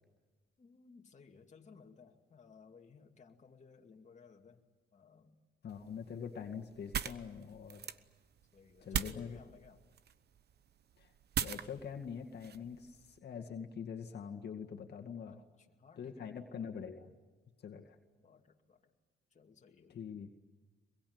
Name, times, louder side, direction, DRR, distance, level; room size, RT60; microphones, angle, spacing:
voice 1, 0.6-4.6 4.9-5.4 8.5-9.8 15.2-16.3 18.2-18.9 19.3-20.3, left 5 dB, 35° left, 2 dB, 2.4 m, -60 dB
voice 2, 5.6-8.0 8.8-9.4 11.0-15.4 16.0-17.1 17.6-18.0 19.9-20.3, left 7 dB, 55° left, 3 dB, 2.2 m, -44 dB
sound 1, 5.7-13.2, right 8 dB, 55° right, 1.1 m, -42 dB
24.5 x 22.5 x 9.6 m, 1.3 s
cardioid pair, 90°, 20 cm